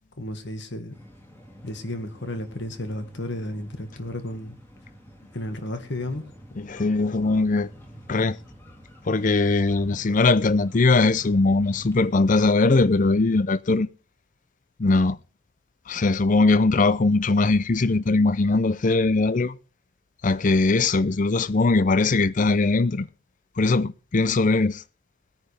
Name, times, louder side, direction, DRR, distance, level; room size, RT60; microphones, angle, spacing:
voice 1, 0.2-0.9 1.6-4.6 5.3-6.2, left 1 dB, 55° left, 1.8 m, -33 dB
sound 1, 0.9-12.5, equal, 10° left, 2.9 m, -48 dB
voice 2, 6.6-7.7 8.1-8.4 9.1-13.9 14.8-15.2 15.9-19.6 20.2-23.1 23.6-24.8, left 3 dB, 40° left, 0.5 m, -20 dB
20.0 x 10.0 x 3.4 m
head